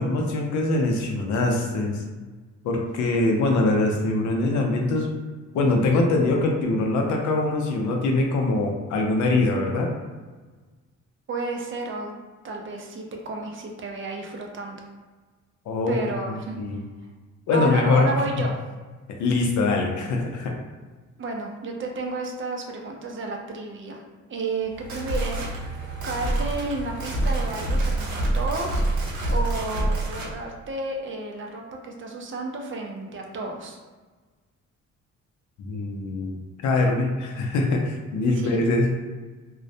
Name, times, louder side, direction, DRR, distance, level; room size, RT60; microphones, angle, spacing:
voice 1, 0.0-2.0 2.6-5.1 5.5-9.9 15.7-15.9 16.6-16.8 17.5-18.1 19.2-20.5 35.6-36.4 36.6-38.9, left 2 dB, 75° left, 1 dB, 0.6 m, -23 dB
voice 2, 11.3-12.1 12.4-14.8 15.9-16.6 17.5-18.5 21.2-24.0 24.3-25.4 26.0-33.8 38.4-38.6, right 2 dB, 40° right, 1 dB, 0.5 m, -32 dB
sound 1, 24.7-30.3, right 2 dB, 75° right, 0.7 m, -26 dB
2.3 x 2.1 x 2.6 m, 1.3 s
cardioid pair, 90°, 30 cm